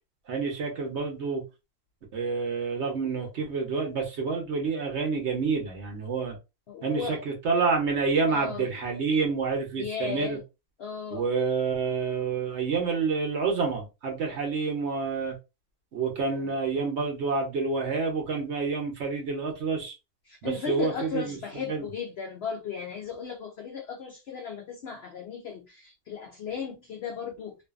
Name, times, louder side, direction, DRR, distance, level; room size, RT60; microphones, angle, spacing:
voice 1, 0.3-1.4 2.1-6.4 6.8-10.4 11.1-15.4 15.9-19.9 20.4-21.4 21.7-21.9, right 4 dB, 55° right, 0.9 m, -28 dB
voice 2, 6.7-7.2 8.3-8.6 9.8-10.4 10.8-11.2 16.3-16.6 20.3-27.6, left 6 dB, 80° left, 0.5 m, -36 dB
2.6 x 2.4 x 2.4 m
omnidirectional pair, 1.6 m